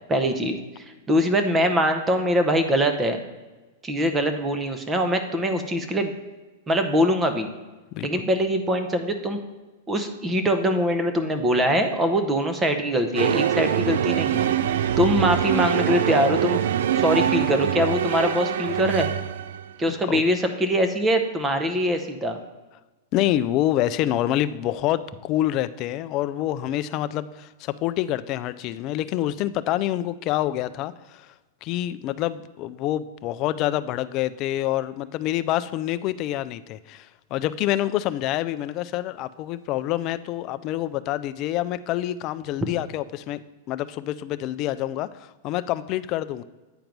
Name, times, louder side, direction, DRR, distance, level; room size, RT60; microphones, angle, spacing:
voice 1, 0.1-3.2 3.8-6.1 6.7-7.5 8.0-9.4 9.9-14.5 15.0-16.6 16.9-19.1 19.8-22.4, equal, 15° right, 7 dB, 0.7 m, -23 dB
sound 1, 13.2-19.7, right 9 dB, 75° right, 0.4 m, -24 dB
voice 2, 23.1-31.3 31.6-43.4 43.7-46.4, left 13 dB, 40° left, 13 dB, 0.3 m, -27 dB
8.9 x 4.6 x 5.2 m, 1.2 s
supercardioid pair, 145°, 0 cm